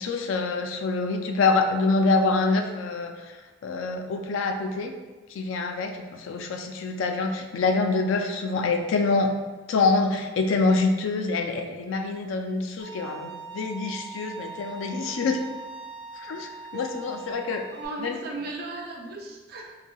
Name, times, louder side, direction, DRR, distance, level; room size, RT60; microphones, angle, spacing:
voice 1, 0.0-3.1 3.6-4.9 5.3-9.3 9.7-15.4 16.2-17.6 18.0-18.2, left 3 dB, 90° left, 4 dB, 0.3 m, -25 dB
Bowed string instrument, 12.8-17.9, right 5 dB, 70° left, 0.7 m, -41 dB
voice 2, 17.7-19.8, right 2 dB, 50° right, 1 dB, 0.4 m, -36 dB
3.2 x 2.5 x 2.2 m, 1.2 s
head